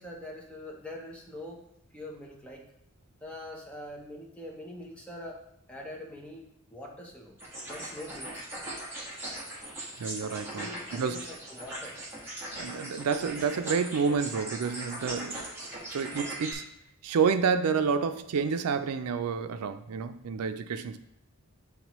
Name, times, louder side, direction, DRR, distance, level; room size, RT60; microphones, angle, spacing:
voice 1, 0.0-1.6 1.9-2.6 3.2-5.4 5.7-7.4 7.7-8.3 10.6-12.0, left 1 dB, 5° left, -1 dB, 0.9 m, -43 dB
sound 1, 7.4-16.5, right 1 dB, 10° right, 1.4 m, -39 dB
voice 2, 10.0-11.3 12.6-15.5 15.9-16.7 17.0-21.0, right 6 dB, 90° right, 10 dB, 0.4 m, -29 dB
8.7 x 3.6 x 3.0 m, 0.80 s
head